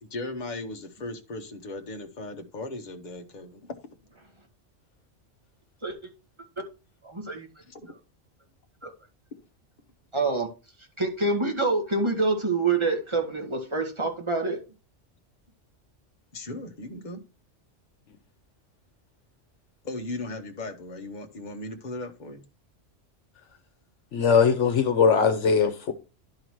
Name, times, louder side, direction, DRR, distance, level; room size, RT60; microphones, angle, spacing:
voice 1, 0.0-3.7 7.6-7.9 16.3-17.2 19.8-22.4, left 2 dB, 40° left, 1.2 m, -37 dB
voice 2, 7.0-7.5 8.8-8.9 10.1-10.5 11.0-14.6, right 3 dB, 25° right, 1.7 m, -26 dB
voice 3, 24.1-25.9, left 6 dB, 75° left, 1.2 m, -20 dB
11.5 x 3.9 x 4.6 m
omnidirectional pair, 1.2 m